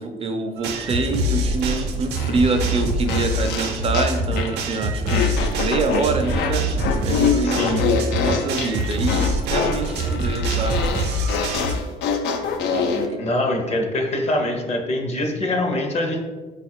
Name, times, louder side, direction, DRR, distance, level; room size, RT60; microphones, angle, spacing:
voice 1, 0.0-6.6 7.0-7.7 8.2-10.9 12.7-13.3, right 3 dB, 35° right, 5 dB, 0.4 m, -25 dB
sound 1, 0.6-11.8, right 1 dB, 85° right, 0.6 m, -24 dB
sound 2, 2.1-4.6 5.1-13.1, left 5 dB, 85° left, 0.5 m, -25 dB
voice 2, 7.4-7.8 13.1-16.2, left 1 dB, 40° left, 3 dB, 0.7 m, -24 dB
4.1 x 2.4 x 4.3 m, 1.3 s
cardioid pair, 110°, 17 cm